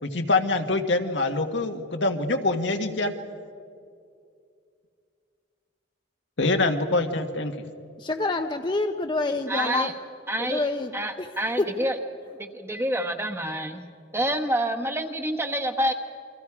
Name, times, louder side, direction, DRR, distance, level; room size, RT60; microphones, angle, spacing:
voice 1, 0.0-3.1 6.4-7.5, left 2 dB, 85° left, 5 dB, 1.6 m, -25 dB
voice 2, 8.0-9.9 10.4-10.9 11.2-11.3 11.6-11.9, left 2 dB, 25° left, 6 dB, 0.6 m, -27 dB
voice 3, 9.5-9.9 10.3-12.0 12.4-13.8 14.1-15.9, right 1 dB, 15° right, 5 dB, 1.1 m, -28 dB
29.0 x 24.0 x 4.9 m, 2.3 s
head